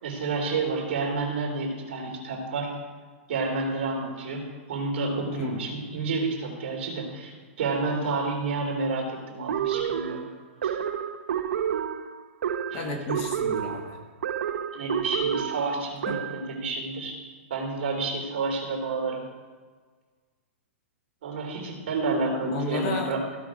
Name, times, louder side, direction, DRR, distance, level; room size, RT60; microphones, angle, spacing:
voice 1, 0.0-2.7 3.3-10.2 10.6-10.8 12.7-12.9 14.7-17.1 17.5-19.2 21.2-23.2, right 3 dB, 50° right, 0 dB, 3.0 m, -30 dB
voice 2, 5.3-5.6 12.7-14.0 16.1-16.2 22.5-23.4, left 2 dB, 25° left, 3 dB, 1.1 m, -32 dB
sound 1, 9.5-16.5, right 9 dB, 80° right, 0.7 m, -29 dB
15.5 x 5.8 x 5.0 m, 1.5 s
hypercardioid pair, 180°, 7 cm